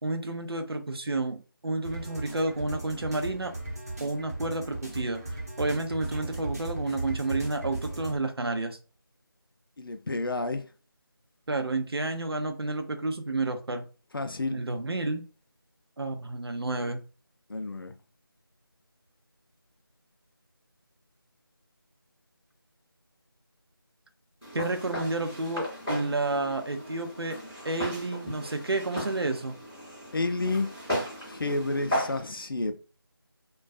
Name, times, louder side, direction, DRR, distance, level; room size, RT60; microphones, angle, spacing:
voice 1, 0.0-3.5 4.0-5.2 5.6-8.8 11.5-13.9 14.5-15.2 16.0-17.0 24.5-27.4 27.6-29.5, right 2 dB, 85° right, 0.6 m, -30 dB
sound 1, 1.8-8.2, right 2 dB, 40° right, 0.8 m, -37 dB
voice 2, 9.8-10.7 14.1-14.6 17.5-17.9 30.1-30.7 31.2-32.8, left 2 dB, 65° left, 0.4 m, -30 dB
Walk footsteps, 24.4-32.2, equal, ahead, 0.7 m, -36 dB
2.2 x 2.2 x 2.5 m
figure-of-eight pair, 170°, 13 cm